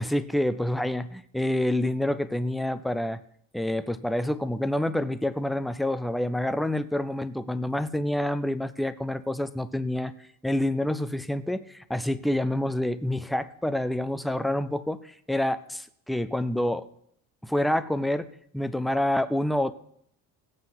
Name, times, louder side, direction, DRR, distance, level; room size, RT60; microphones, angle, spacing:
voice 1, 0.0-3.2 3.5-10.1 10.4-16.9 17.4-18.3 18.5-19.7, left 1 dB, ahead, 14 dB, 0.4 m, -27 dB
17.0 x 7.7 x 6.1 m, 0.67 s
cardioid pair, 165°, 34 cm